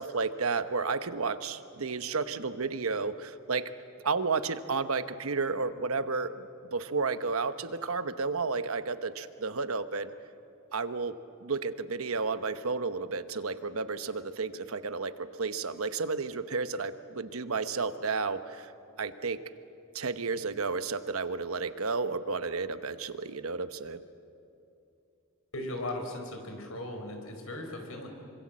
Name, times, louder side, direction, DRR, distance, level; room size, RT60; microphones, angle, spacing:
voice 1, 0.0-3.7 4.0-10.1 10.7-18.7 19.0-19.4 19.9-24.0, right 4 dB, 80° right, 11 dB, 1.0 m, -32 dB
voice 2, 25.5-28.1, left 1 dB, 75° left, 4 dB, 4.7 m, -37 dB
26.5 x 24.5 x 7.6 m, 2.7 s
head